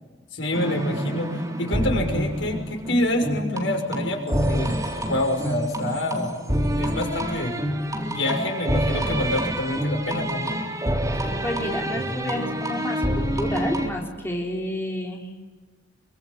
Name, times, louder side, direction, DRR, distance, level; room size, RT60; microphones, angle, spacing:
voice 1, 0.3-7.6 8.0-10.6, left 1 dB, 85° left, 3 dB, 6.1 m, -27 dB
sound 1, 0.5-13.9, equal, 20° right, 3.5 m, -27 dB
voice 2, 11.1-15.3, left 1 dB, 15° left, 0 dB, 3.6 m, -30 dB
28.0 x 24.0 x 8.7 m, 1.3 s
head